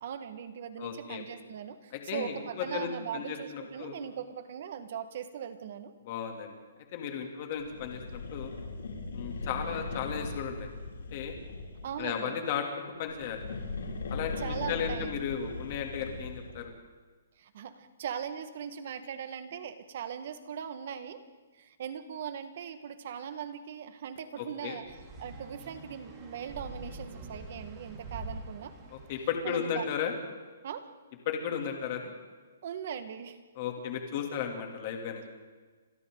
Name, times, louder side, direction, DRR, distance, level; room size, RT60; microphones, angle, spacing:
voice 1, 0.0-5.9 11.8-12.4 14.4-15.3 17.4-21.2 21.6-28.7 29.4-29.9 30.6-30.9 32.6-33.4, right 8 dB, 40° right, 10 dB, 1.6 m, -40 dB
voice 2, 0.8-1.2 2.1-4.0 6.1-6.5 6.9-8.5 9.1-10.7 11.1-11.3 12.0-12.6 13.0-13.4 14.1-16.7 24.4-24.8 28.9-30.1 31.3-32.1 33.6-35.2, left 7 dB, 30° left, 3 dB, 2.9 m, -35 dB
sound 1, 7.6-12.1 13.0-16.7, left 3 dB, 90° left, 6.6 m, -39 dB
sound 2, 24.8-29.7, right 2 dB, 15° right, 2.8 m, -45 dB
28.5 x 26.0 x 3.9 m, 1.4 s
hypercardioid pair, 175°, 0 cm